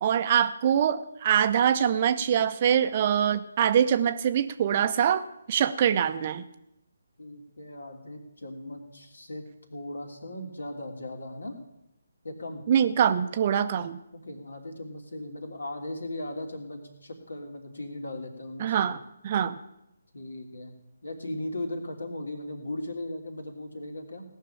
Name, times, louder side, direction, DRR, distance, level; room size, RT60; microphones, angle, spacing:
voice 1, 0.0-6.4 12.7-14.0 18.6-19.6, right 9 dB, 35° right, 11 dB, 0.7 m, -24 dB
voice 2, 7.2-9.4 9.7-11.5 12.2-12.6 14.1-18.7 20.1-20.7 21.0-24.2, left 1 dB, 70° left, 4 dB, 3.0 m, -37 dB
18.0 x 6.5 x 9.0 m, 0.87 s
figure-of-eight pair, 145°, 0 cm